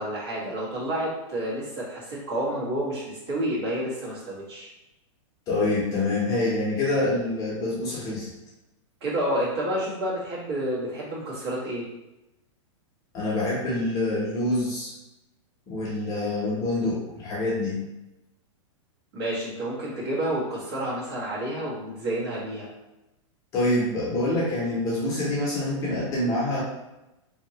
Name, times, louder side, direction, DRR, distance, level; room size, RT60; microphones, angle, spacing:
voice 1, 0.0-4.7 9.0-11.8 19.1-22.7, right 1 dB, 50° right, -7 dB, 1.4 m, -29 dB
voice 2, 5.5-8.3 13.1-14.9 15.7-17.8 23.5-26.6, left 2 dB, 20° left, -7 dB, 0.8 m, -26 dB
2.8 x 2.8 x 2.8 m, 0.95 s
supercardioid pair, 165°, 17 cm